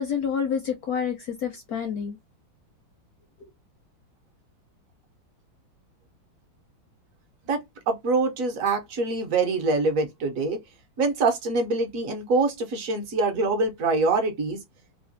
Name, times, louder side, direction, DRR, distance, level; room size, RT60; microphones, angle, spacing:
voice 1, 0.0-2.2, left 7 dB, 70° left, 0.9 m, -28 dB
voice 2, 7.9-10.6 11.0-14.6, right 3 dB, 60° right, 0.9 m, -24 dB
3.4 x 2.2 x 2.5 m
omnidirectional pair, 2.2 m